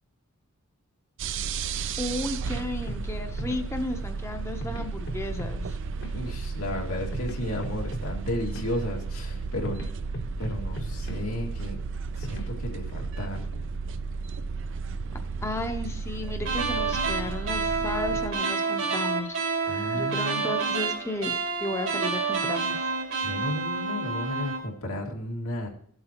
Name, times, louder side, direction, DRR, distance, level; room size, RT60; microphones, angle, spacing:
sound 1, 1.2-18.3, right 4 dB, 60° right, 0.5 m, -34 dB
voice 1, 2.0-5.8 15.4-19.3 19.9-22.9, left 2 dB, 15° left, 5 dB, 0.7 m, -34 dB
sound 2, 2.9-13.0, equal, 55° left, 1.1 m, -40 dB
voice 2, 6.1-9.8 10.4-11.8 12.1-13.6 19.6-20.5 23.2-25.7, left 1 dB, 90° left, 0 dB, 2.2 m, -33 dB
sound 3, 16.4-24.7, right 4 dB, 80° right, 2.6 m, -29 dB
15.5 x 7.9 x 2.9 m, 0.62 s
head